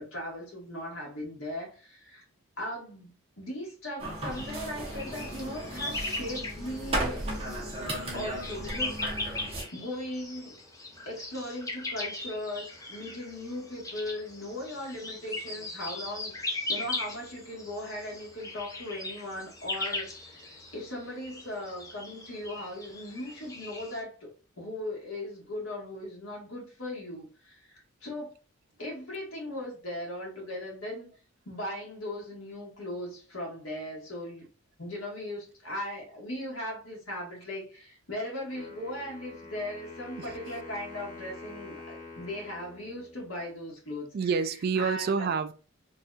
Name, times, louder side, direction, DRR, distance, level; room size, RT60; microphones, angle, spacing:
voice 1, 0.0-2.2 2.6-7.3 8.1-10.6 11.0-24.3 24.6-28.3 28.8-31.1 31.4-34.4 34.8-44.1 44.8-45.3, left 1 dB, 75° left, 1.8 m, -38 dB
sound 1, 4.0-9.6, right 1 dB, 25° right, 1.0 m, -35 dB
sound 2, 4.3-24.0, left 2 dB, 15° left, 0.7 m, -39 dB
Wind instrument woodwind instrument, 38.5-43.5, left 3 dB, 40° left, 1.1 m, -46 dB
voice 2, 44.1-45.5, right 5 dB, 45° right, 0.3 m, -29 dB
4.0 x 2.7 x 2.5 m
head